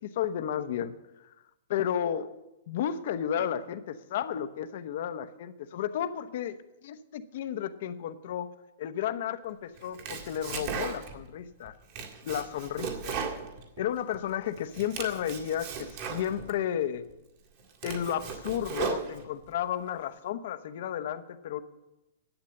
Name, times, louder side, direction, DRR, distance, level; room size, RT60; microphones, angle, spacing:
voice 1, 0.0-0.9 1.2-1.3 1.7-2.3 2.7-8.5 8.8-11.8 12.2-13.2 13.8-17.1 17.8-21.6, left 10 dB, 50° left, 11 dB, 0.8 m, -33 dB
Domestic sounds home sounds, 9.8-11.3 11.7-14.2 14.6-16.5 17.1-17.2 17.6-19.5, right 6 dB, 35° right, 1.8 m, -37 dB
11.5 x 8.2 x 7.7 m, 0.97 s
hypercardioid pair, 170°, 0 cm